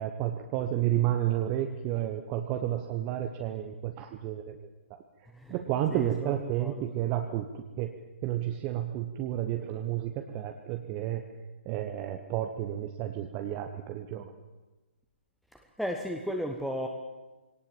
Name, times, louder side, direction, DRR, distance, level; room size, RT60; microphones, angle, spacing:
voice 1, 0.0-5.0 5.5-7.9 8.2-11.2 11.7-14.3, right 12 dB, 25° right, 5 dB, 1.0 m, -31 dB
voice 2, 5.9-6.3 6.6-6.9 15.5-16.9, equal, ahead, 3 dB, 1.0 m, -35 dB
21.5 x 18.0 x 7.2 m, 1.2 s
figure-of-eight pair, 130°, 6 cm